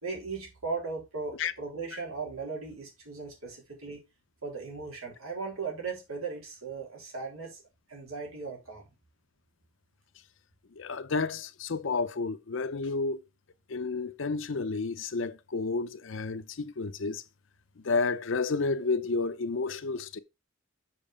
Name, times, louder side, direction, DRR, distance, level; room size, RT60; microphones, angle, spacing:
voice 1, 0.0-4.0 4.4-7.6 7.9-8.8, right 4 dB, 90° right, 3.7 m, -37 dB
voice 2, 10.8-13.2 13.7-17.2 17.8-20.2, left 4 dB, 60° left, 0.6 m, -31 dB
7.3 x 4.6 x 4.9 m
head